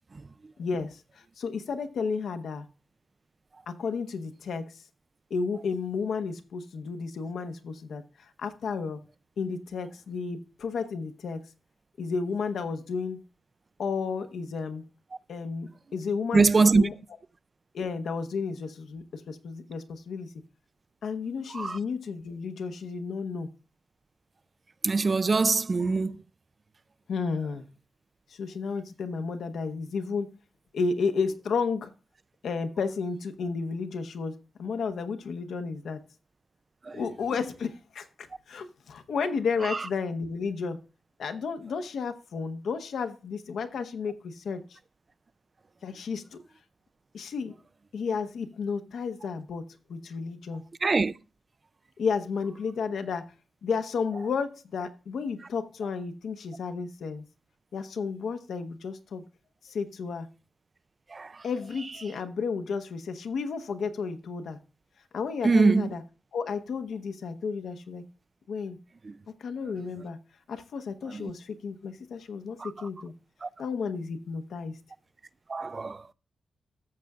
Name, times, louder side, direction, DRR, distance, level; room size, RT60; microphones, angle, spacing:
voice 1, 0.6-2.7 3.7-4.8 5.3-9.0 9.4-11.4 12.0-13.2 13.8-14.9 15.3-16.9 17.7-20.3 21.0-23.5 27.1-27.7 28.3-30.3 30.7-31.9 32.4-36.0 36.9-40.8 41.2-44.8 45.8-46.4 47.1-47.5 47.9-50.6 52.0-53.3 53.6-57.2 57.7-59.2 59.6-60.3 61.4-64.6 65.1-66.0 66.3-68.0 68.5-68.8 69.3-70.2 70.5-73.1 73.6-74.8, left 5 dB, 90° left, 0.9 m, -32 dB
voice 2, 16.3-16.8 21.5-21.8 24.8-26.1 36.9-37.0 50.8-51.1 61.1-61.3 65.4-65.9 71.1-71.3 72.6-72.7 73.4-73.5 75.5-76.0, right 4 dB, 35° right, 0.3 m, -22 dB
13.5 x 7.6 x 2.4 m
wide cardioid pair, 135°, 0 cm